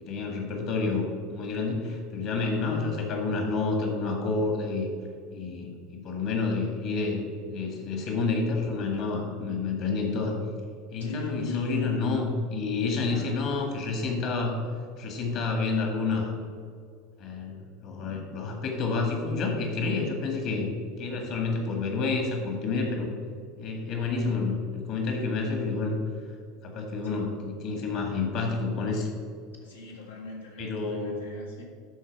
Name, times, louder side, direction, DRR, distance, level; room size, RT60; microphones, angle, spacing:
voice 1, 0.0-4.9 5.3-10.3 10.9-14.6 15.0-16.3 17.2-20.7 21.0-23.1 23.6-26.0 26.6-29.1 30.6-31.3, left 4 dB, 50° left, 3 dB, 1.8 m, -29 dB
voice 2, 11.0-12.1 13.0-13.7 27.0-27.3 29.6-31.6, left 3 dB, 80° left, -2 dB, 1.7 m, -40 dB
12.0 x 4.5 x 4.7 m, 2.2 s
figure-of-eight pair, 75°, 0 cm